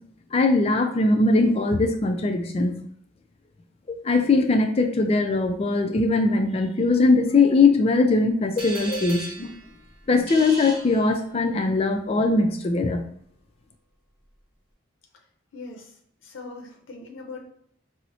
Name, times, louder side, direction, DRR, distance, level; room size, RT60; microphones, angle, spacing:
voice 1, 0.3-2.8 3.9-9.5 10.1-13.0, left 3 dB, 30° left, 6 dB, 0.3 m, -21 dB
sound 1, 8.6-11.6, right 2 dB, 25° right, 1.4 m, -38 dB
voice 2, 15.5-16.0 16.2-17.5, left 3 dB, 85° left, 0 dB, 0.6 m, -40 dB
4.1 x 2.0 x 2.7 m, 0.66 s
head